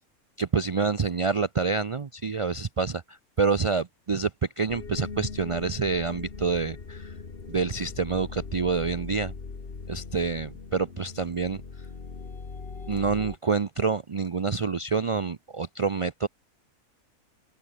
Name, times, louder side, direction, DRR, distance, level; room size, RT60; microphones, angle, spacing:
voice 1, 0.4-4.3 4.6-7.1 7.5-9.3 9.9-11.6 12.9-16.3, right 4 dB, 55° right, 0.3 m, -27 dB
sound 1, 4.7-13.4, left 4 dB, 40° left, 1.9 m, -40 dB
open air
omnidirectional pair, 1.5 m